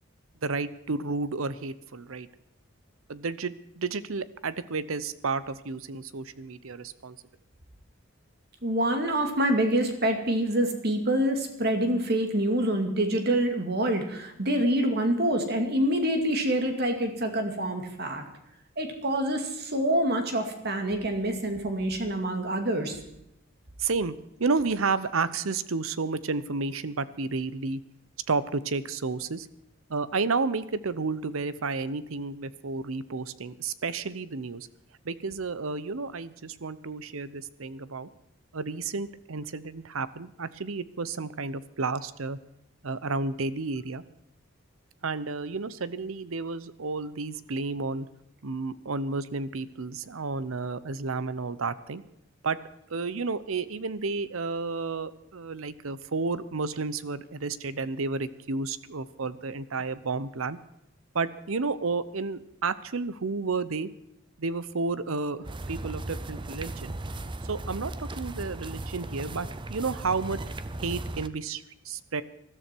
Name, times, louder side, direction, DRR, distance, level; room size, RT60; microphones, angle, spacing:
voice 1, 0.4-2.3 3.1-7.2 23.8-27.8 28.3-29.5 29.9-34.7 35.0-38.1 38.5-42.4 42.8-44.0 45.0-48.1 48.4-52.0 52.4-52.6 52.9-60.6 61.1-63.9 64.4-66.9 67.5-70.4 70.8-72.2, right 4 dB, 85° right, 16 dB, 0.8 m, -31 dB
voice 2, 8.6-18.2 18.8-23.0, right 1 dB, 50° right, 5 dB, 2.4 m, -26 dB
sound 1, 65.4-71.3, right 2 dB, 25° right, 0.6 m, -37 dB
20.5 x 13.5 x 4.6 m, 0.80 s
head